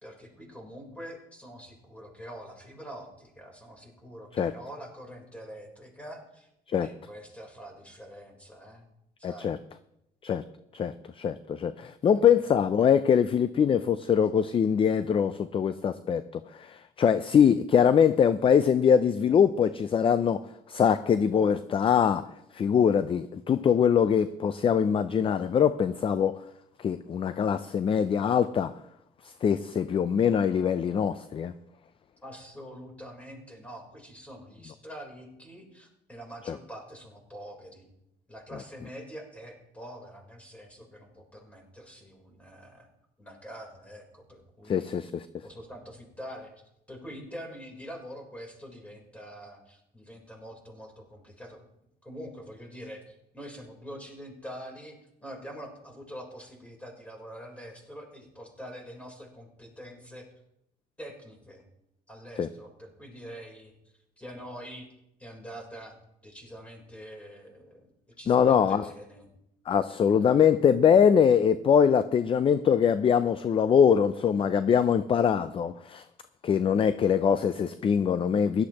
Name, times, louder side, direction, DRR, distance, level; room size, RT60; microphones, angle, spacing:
voice 1, 0.0-6.5 6.8-8.9 9.2-9.6 12.1-12.2 32.2-37.9 38.3-42.9 43.2-44.9 45.4-46.5 46.9-51.6 52.0-60.3 61.0-61.6 62.1-63.7 64.2-64.9 65.2-65.9 66.2-69.3, equal, 10° left, 1 dB, 3.7 m, -45 dB
voice 2, 9.2-9.6 10.2-10.4 10.7-20.4 20.7-22.2 22.5-26.4 26.8-28.7 29.4-31.5 44.7-45.3 62.4-62.5 68.3-68.9 69.7-76.0 76.4-78.6, left 7 dB, 30° left, 13 dB, 0.4 m, -23 dB
16.5 x 11.5 x 2.9 m, 0.81 s
cardioid pair, 110°, 17 cm